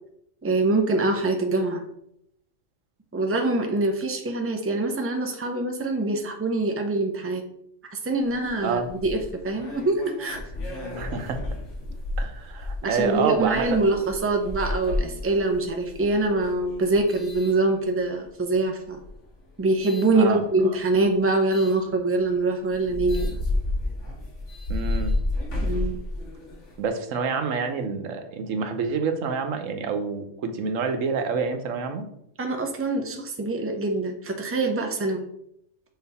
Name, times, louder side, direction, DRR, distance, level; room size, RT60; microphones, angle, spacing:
voice 1, 0.4-1.8 3.1-7.4 7.9-10.4 12.8-19.0 19.6-23.3 25.6-26.0 32.4-35.2, right 2 dB, 15° right, 3 dB, 0.6 m, -24 dB
sound 1, 8.2-18.2 18.9-20.1 21.5-21.8 22.3-22.4 22.7-26.9, left 2 dB, 70° left, 1.8 m, -32 dB
voice 2, 10.9-11.4 12.2-13.7 20.1-20.4 24.7-25.2 26.8-32.1, right 5 dB, 90° right, 7 dB, 1.2 m, -27 dB
6.3 x 4.1 x 4.1 m, 0.76 s
omnidirectional pair, 1.3 m